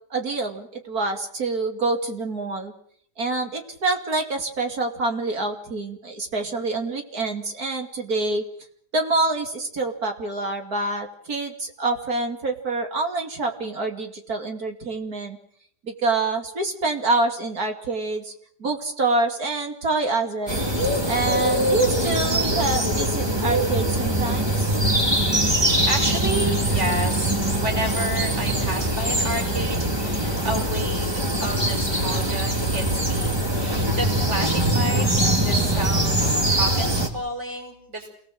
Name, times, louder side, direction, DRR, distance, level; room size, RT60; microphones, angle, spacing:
voice 1, 0.1-2.7 3.2-8.4 8.9-15.4 15.8-18.3 18.6-24.7, right 3 dB, 65° right, 4 dB, 3.1 m, -26 dB
sound 1, 20.5-37.1, right 1 dB, 15° right, 2.7 m, -22 dB
voice 2, 24.9-38.1, right 1 dB, 45° right, 3 dB, 5.9 m, -31 dB
27.5 x 19.0 x 7.8 m, 0.66 s
omnidirectional pair, 1.7 m